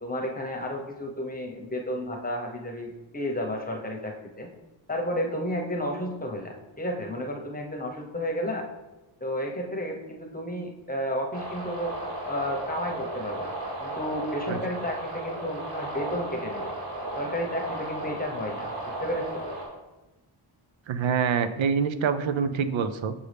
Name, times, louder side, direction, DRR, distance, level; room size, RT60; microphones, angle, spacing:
voice 1, 0.0-4.5 4.9-8.6 9.2-11.9 12.2-13.5 13.8-16.7 17.2-19.4, equal, 20° left, 1 dB, 0.9 m, -32 dB
sound 1, 11.3-19.7, right 1 dB, 50° right, 1.7 m, -34 dB
voice 2, 20.9-23.1, right 6 dB, 70° right, 10 dB, 0.5 m, -26 dB
6.7 x 5.3 x 3.4 m, 1.1 s
wide cardioid pair, 120°, 48 cm